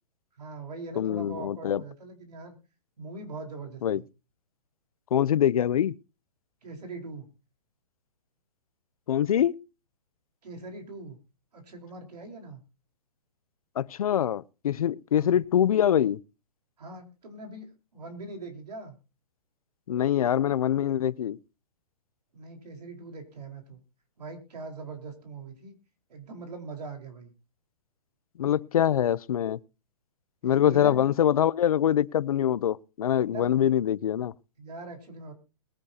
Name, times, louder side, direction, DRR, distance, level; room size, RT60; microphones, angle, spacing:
voice 1, 0.4-2.5 3.0-4.1 6.6-7.3 10.4-11.2 11.5-12.6 15.1-15.4 16.8-19.0 22.3-23.8 24.2-25.8 26.1-27.3 30.4-31.0 33.3-33.7 34.6-35.3, right 3 dB, 90° right, 4.4 m, -42 dB
voice 2, 1.0-1.8 3.8-4.0 5.1-6.0 9.1-9.6 13.8-16.2 19.9-21.4 28.4-29.6 30.4-34.3, left 10 dB, 65° left, 0.6 m, -24 dB
21.5 x 9.8 x 2.8 m
hypercardioid pair, 170°, 20 cm